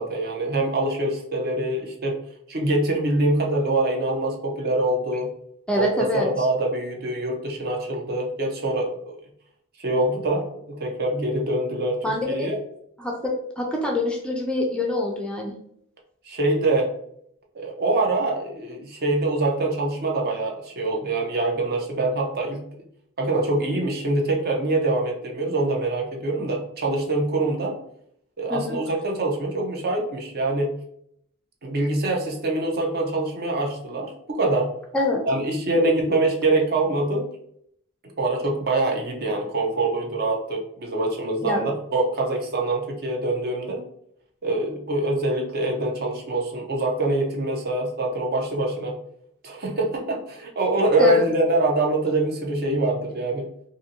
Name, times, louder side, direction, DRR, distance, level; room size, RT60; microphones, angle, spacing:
voice 1, 0.0-2.2 2.5-5.3 5.7-9.2 9.8-12.0 12.3-12.6 16.3-16.9 17.5-22.6 23.2-27.8 28.4-30.7 31.6-34.7 35.3-37.3 38.2-43.8 44.4-49.0 49.4-53.5, right 2 dB, 50° right, 1 dB, 0.5 m, -24 dB
voice 2, 5.7-6.5 12.0-12.5 13.0-15.6 28.5-28.8 34.9-35.2 41.4-41.6 51.0-51.3, left 2 dB, 5° left, -1 dB, 0.3 m, -25 dB
2.5 x 2.5 x 2.7 m, 0.70 s
head